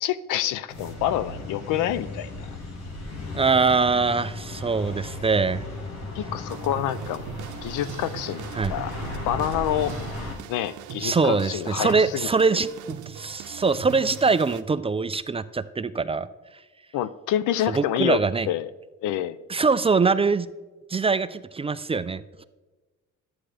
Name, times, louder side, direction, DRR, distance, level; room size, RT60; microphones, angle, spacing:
voice 1, 0.0-2.5 6.1-7.3 7.6-8.9 9.2-10.0 10.5-12.6 16.9-18.2 18.5-18.7 19.0-19.4, left 12 dB, 85° left, 16 dB, 0.5 m, -27 dB
sound 1, 0.7-10.3, left 2 dB, 60° left, 1.8 m, -36 dB
voice 2, 3.3-5.6 8.5-8.7 11.0-16.3 17.7-18.5 19.5-20.5 20.9-22.4, right 4 dB, 20° right, 13 dB, 0.3 m, -23 dB
sound 2, 6.5-14.6, right 10 dB, 80° right, 0.7 m, -40 dB
11.5 x 8.8 x 3.3 m, 1.2 s
cardioid pair, 90°, 30 cm